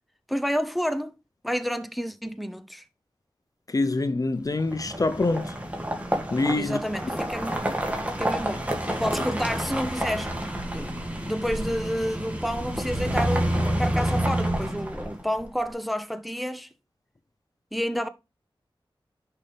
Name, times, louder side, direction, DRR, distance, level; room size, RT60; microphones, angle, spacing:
voice 1, 0.3-1.2 1.4-2.8 6.6-7.7 8.2-8.7 9.0-10.3 10.7-11.0 11.3-16.7 17.7-18.1, equal, ahead, 0.7 m, -29 dB
voice 2, 3.7-5.6 6.3-6.8, left 2 dB, 40° left, 0.6 m, -25 dB
sound 1, 4.6-15.4, right 1 dB, 15° right, 2.2 m, -29 dB
10.5 x 5.6 x 3.4 m
wide cardioid pair, 75°, 9 cm